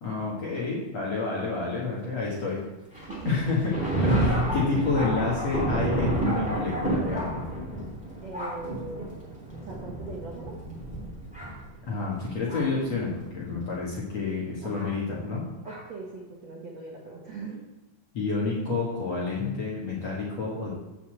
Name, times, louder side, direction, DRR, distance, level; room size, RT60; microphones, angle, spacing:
voice 1, 0.0-2.6 2.9-3.6 4.2-7.5 11.9-15.4 18.1-20.7, left 4 dB, 50° left, -5 dB, 2.0 m, -29 dB
Thunder, 2.9-12.9 13.6-13.7 14.7-14.9 15.6-15.8, right 1 dB, ahead, 1.9 m, -30 dB
voice 2, 8.2-10.6 14.6-14.7 15.6-17.6, right 3 dB, 80° right, -2 dB, 1.5 m, -40 dB
8.2 x 5.6 x 7.7 m, 1.1 s
omnidirectional pair, 5.4 m